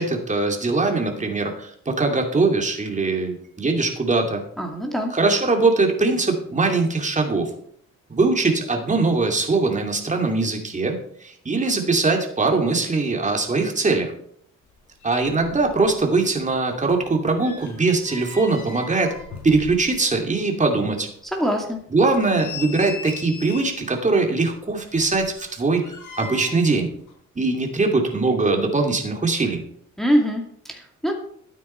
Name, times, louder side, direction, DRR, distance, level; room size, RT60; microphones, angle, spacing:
voice 1, 0.0-4.4 5.1-7.5 8.1-14.1 15.0-19.1 19.4-21.1 21.9-25.8 26.2-26.9 27.4-29.6, right 3 dB, 25° right, 2 dB, 2.7 m, -21 dB
voice 2, 4.6-5.1 21.3-21.8 30.0-31.1, equal, ahead, 1 dB, 2.3 m, -23 dB
sound 1, 14.7-14.8 15.0-16.0 16.3-20.2 20.6-20.7 21.2-21.3 21.9-23.8 24.7-26.7 27.0-27.1, left 5 dB, 75° left, 4.5 m, -39 dB
12.5 x 9.3 x 4.5 m, 0.64 s
cardioid pair, 90°, 30 cm